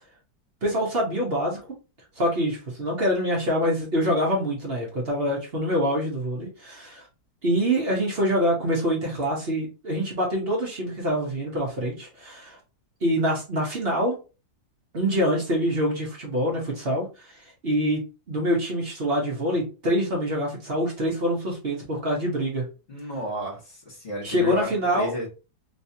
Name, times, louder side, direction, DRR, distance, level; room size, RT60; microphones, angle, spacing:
voice 1, 0.6-1.6 2.2-7.1 7.4-12.6 13.0-14.2 14.9-17.0 17.6-18.0 18.3-22.6 24.2-25.3, equal, 40° right, -2 dB, 1.0 m, -25 dB
voice 2, 22.9-25.3, equal, 30° left, -2 dB, 1.7 m, -33 dB
3.2 x 3.0 x 2.7 m, 0.32 s
omnidirectional pair, 1.9 m